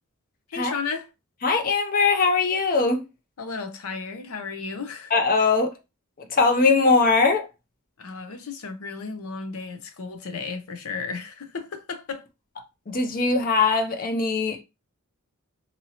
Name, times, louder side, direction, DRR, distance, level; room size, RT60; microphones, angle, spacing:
voice 1, 0.5-1.1 3.4-5.1 8.0-12.3, left 5 dB, 75° left, 0.6 m, -34 dB
voice 2, 1.4-3.0 5.1-5.8 6.2-7.5 12.9-14.6, left 4 dB, 40° left, 0.6 m, -21 dB
2.8 x 2.7 x 2.8 m
head